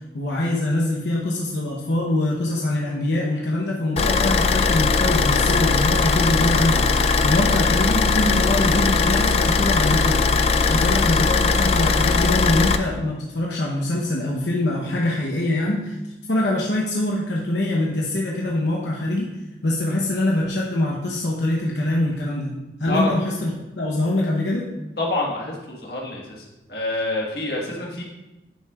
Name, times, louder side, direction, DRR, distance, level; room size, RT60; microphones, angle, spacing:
voice 1, 0.1-10.2 10.7-16.0 16.3-19.3 19.6-22.5 22.8-23.5 23.8-24.7, left 1 dB, 85° left, -3 dB, 0.9 m, -24 dB
Car / Idling, 4.0-12.8, left 4 dB, 35° left, 0.3 m, -19 dB
voice 2, 25.0-26.4 26.7-28.0, left 2 dB, 60° left, -2 dB, 1.5 m, -27 dB
9.9 x 5.7 x 2.4 m, 1.0 s
head